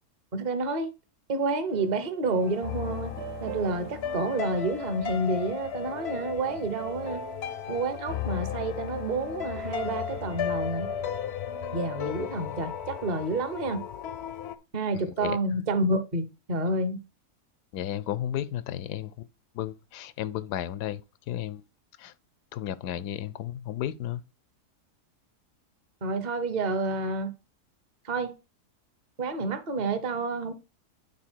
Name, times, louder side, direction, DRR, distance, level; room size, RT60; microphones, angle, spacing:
voice 1, 0.3-0.9 1.3-3.1 3.4-7.2 7.7-10.9 11.7-13.8 14.7-17.0 26.0-27.3 28.0-28.3 29.2-30.5, right 2 dB, 30° right, 0.9 m, -29 dB
sound 1, 1.7-12.7, right 11 dB, 80° right, 1.1 m, -45 dB
sound 2, 2.4-14.6, left 9 dB, 60° left, 0.7 m, -35 dB
voice 2, 14.9-15.4 17.7-19.1 19.5-21.0 21.3-21.6 22.0-22.1 22.5-24.2, left 11 dB, 85° left, 1.2 m, -33 dB
8.8 x 4.0 x 4.4 m
omnidirectional pair, 1.7 m